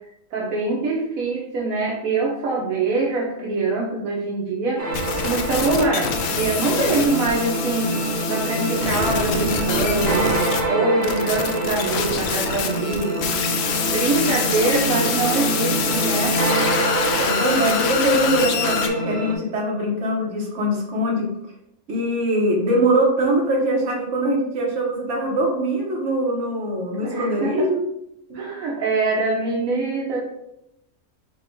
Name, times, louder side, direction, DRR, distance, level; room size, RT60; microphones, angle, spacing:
voice 1, 0.3-4.8 5.2-8.0 8.3-13.4 13.8-16.4 27.0-27.7 28.3-30.2, right 3 dB, 75° right, -3 dB, 1.2 m, -24 dB
sound 1, 4.8-19.4, right 2 dB, 15° right, 1.1 m, -25 dB
sound 2, 4.9-10.6 11.0-18.9, left 6 dB, 65° left, 0.7 m, -26 dB
voice 2, 17.1-21.3 21.9-27.8 28.3-28.4, right 1 dB, 55° right, -2 dB, 1.4 m, -22 dB
5.1 x 2.3 x 4.4 m, 0.81 s
omnidirectional pair, 1.5 m